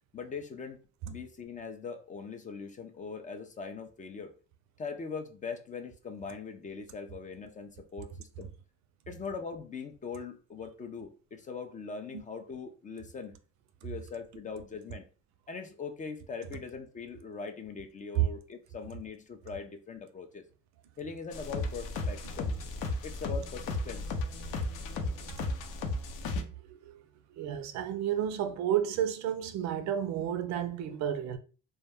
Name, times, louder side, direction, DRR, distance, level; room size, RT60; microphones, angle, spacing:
voice 1, 0.1-0.8 1.0-4.3 4.8-8.5 9.1-13.4 13.8-15.1 15.5-20.4 21.0-22.7 23.0-24.2, left 5 dB, 25° left, 0.3 m, -41 dB
sound 1, 21.3-26.4, left 2 dB, 70° left, 0.7 m, -34 dB
voice 2, 26.6-27.0 27.3-31.4, right 10 dB, 60° right, 0.5 m, -31 dB
2.1 x 2.1 x 3.3 m
supercardioid pair, 95°, 32 cm